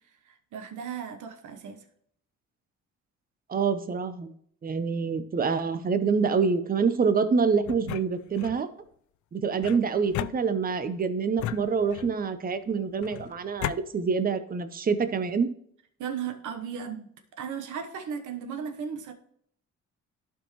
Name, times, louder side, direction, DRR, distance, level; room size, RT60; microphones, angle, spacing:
voice 1, 0.5-1.8 16.0-19.1, right 7 dB, 80° right, 7 dB, 1.1 m, -36 dB
voice 2, 3.5-4.3 4.6-8.7 9.3-15.5, right 5 dB, 30° right, 10 dB, 0.7 m, -26 dB
sound 1, 7.6-8.6 9.6-10.9 11.4-12.3 13.0-13.8, left 13 dB, 70° left, 0.4 m, -36 dB
12.0 x 4.6 x 3.1 m, 0.65 s
cardioid pair, 90°, 30 cm